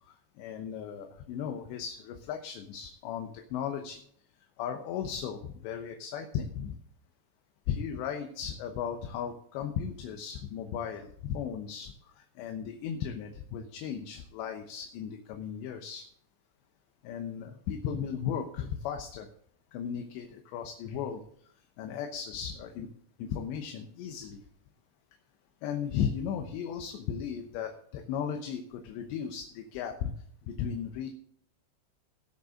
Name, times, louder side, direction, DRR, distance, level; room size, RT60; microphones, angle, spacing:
voice 1, 0.0-4.0 4.6-6.8 7.7-16.0 17.0-19.3 19.7-21.2 21.8-22.9 23.2-24.4 25.6-30.1 30.4-31.1, left 8 dB, 75° left, 4 dB, 3.1 m, -36 dB
19.5 x 6.8 x 3.8 m, 0.64 s
omnidirectional pair, 5.3 m